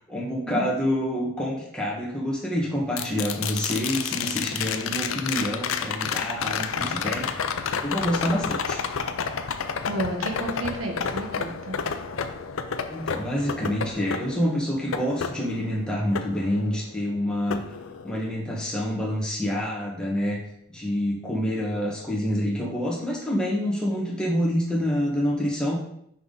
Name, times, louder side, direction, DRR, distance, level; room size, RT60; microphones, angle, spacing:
voice 1, 0.0-7.3 7.8-8.8 12.9-17.7 18.0-20.4 20.7-25.7, equal, 5° left, -4 dB, 1.4 m, -27 dB
sound 1, 3.0-17.1 17.5-18.5 20.8-20.9, left 6 dB, 80° left, 0.5 m, -30 dB
voice 2, 9.8-11.8, right 1 dB, 80° right, 3 dB, 1.3 m, -31 dB
5.9 x 5.5 x 3.9 m, 0.73 s
head